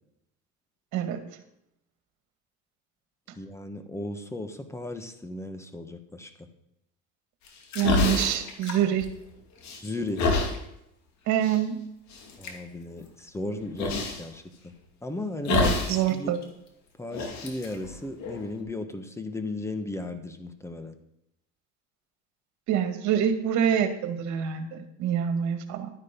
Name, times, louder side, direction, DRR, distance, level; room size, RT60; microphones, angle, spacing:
voice 1, 3.4-6.5 9.8-10.3 12.4-14.7 15.0-16.3 17.0-20.9, left 2 dB, 10° left, 9 dB, 1.4 m, -36 dB
sound 1, 7.5-9.3 9.6-10.6 11.4-11.6 12.1-12.5 13.8-14.2 15.4-16.1 16.4-16.5 17.1-18.6, left 4 dB, 60° left, 2.6 m, -27 dB
voice 2, 7.8-9.1 11.3-11.8 15.5-16.4 22.7-25.9, right 9 dB, 60° right, 8 dB, 2.0 m, -26 dB
12.5 x 9.3 x 5.3 m, 0.79 s
cardioid pair, 120°, 32 cm